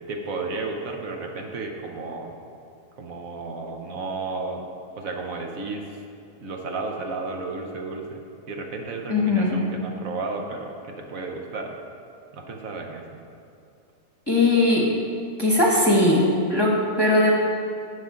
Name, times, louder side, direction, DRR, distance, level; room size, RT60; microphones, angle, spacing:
voice 1, 0.1-2.4 3.0-4.6 5.0-6.0 6.4-8.2 8.5-11.7 12.3-13.0, right 3 dB, 65° right, 2 dB, 1.3 m, -33 dB
voice 2, 9.1-9.6 14.3-14.9 15.4-17.3, left 2 dB, 20° left, -3 dB, 1.1 m, -19 dB
17.0 x 5.7 x 3.7 m, 2.5 s
omnidirectional pair, 1.6 m